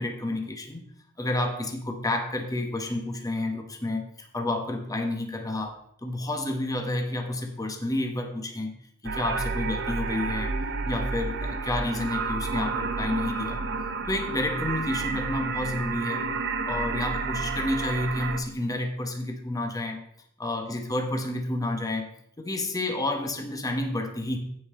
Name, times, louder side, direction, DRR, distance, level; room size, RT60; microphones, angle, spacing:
voice 1, 0.0-8.8 9.0-10.6 10.8-13.7 14.1-16.3 16.6-20.0 20.4-22.1 22.4-24.4, left 1 dB, 15° left, 4 dB, 1.1 m, -30 dB
sound 1, 9.0-18.4, right 4 dB, 55° right, 1.0 m, -30 dB
15.5 x 5.5 x 3.7 m, 0.70 s
head